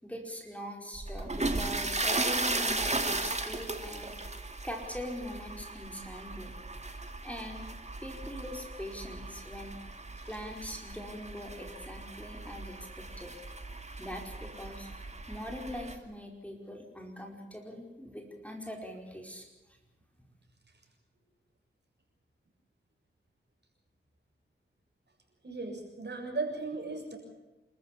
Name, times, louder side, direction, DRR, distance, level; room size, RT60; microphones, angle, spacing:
voice 1, 0.0-4.2 4.6-6.6 7.2-7.7 8.0-9.8 10.3-13.3 14.0-14.9 15.3-19.5, equal, 5° left, 2 dB, 5.0 m, -42 dB
sound 1, 1.0-16.0, right 2 dB, 35° right, 2.4 m, -36 dB
voice 2, 25.4-27.2, right 3 dB, 55° right, 2 dB, 7.3 m, -36 dB
27.5 x 14.0 x 8.5 m, 1.1 s
cardioid pair, 50°, 20 cm